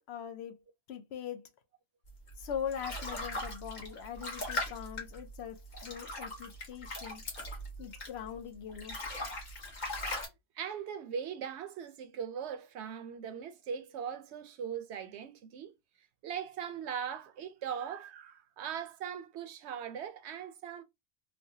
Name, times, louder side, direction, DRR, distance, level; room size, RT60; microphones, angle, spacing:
voice 1, 0.1-0.6 0.9-1.5 2.4-7.2 7.8-9.0, left 8 dB, 65° left, 0.8 m, -41 dB
sound 1, 2.3-8.4 8.7-10.3, left 1 dB, 40° left, 1.1 m, -39 dB
voice 2, 10.6-15.7 16.2-20.8, right 8 dB, 70° right, 0.8 m, -40 dB
3.2 x 2.1 x 2.6 m
omnidirectional pair, 1.2 m